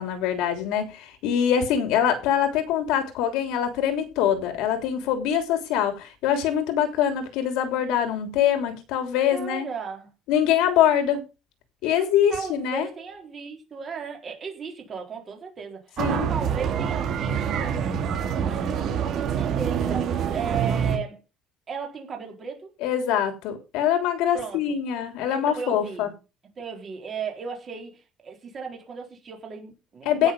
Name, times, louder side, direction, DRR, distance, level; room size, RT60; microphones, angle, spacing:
voice 1, 0.0-9.7 10.3-11.2 11.8-12.9 16.0-16.3 22.8-26.1 30.0-30.3, left 9 dB, 85° left, 3.2 m, -24 dB
voice 2, 9.3-10.1 11.8-21.2 21.7-22.7 24.3-24.6 25.3-26.1 26.6-30.3, right 6 dB, 30° right, 4.2 m, -36 dB
sound 1, 16.0-21.0, right 7 dB, 45° right, 3.1 m, -26 dB
16.5 x 6.6 x 5.4 m
cardioid pair, 170°, 0 cm